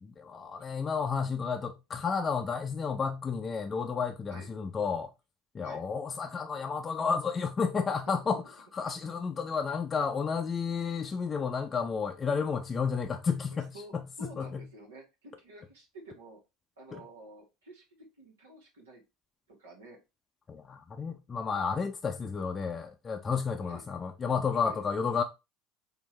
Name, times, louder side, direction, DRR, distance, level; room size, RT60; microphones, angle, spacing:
voice 1, 0.0-5.1 5.5-8.4 8.7-14.6 16.9-17.0 20.5-25.2, left 5 dB, 30° left, 0.5 m, -32 dB
voice 2, 13.7-16.4 16.8-17.8 18.2-19.0 19.5-20.0 23.7-23.8 24.6-24.7, right 2 dB, 85° right, 1.5 m, -50 dB
4.4 x 2.6 x 3.1 m
hypercardioid pair, 75°, 0 cm